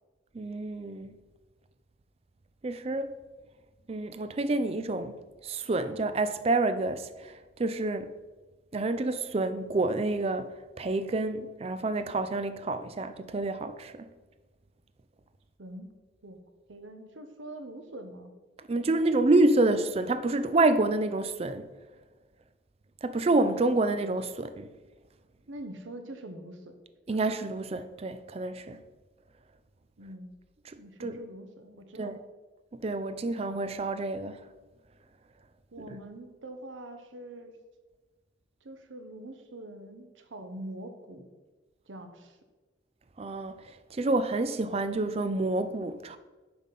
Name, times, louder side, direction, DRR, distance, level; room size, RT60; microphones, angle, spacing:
voice 1, 0.3-1.2 2.6-3.2 3.9-8.1 8.7-14.1 18.6-21.7 23.0-24.7 27.1-28.8 30.7-31.2 32.0-32.2 32.7-34.5 43.2-46.2, right 2 dB, 35° right, 0.4 m, -28 dB
voice 2, 15.6-16.0 16.2-16.4 16.7-18.3 25.5-26.8 30.0-30.3 30.8-32.2 35.7-37.6 38.6-41.3 41.9-42.4, right 1 dB, 90° right, 0.9 m, -44 dB
7.2 x 3.9 x 5.7 m
head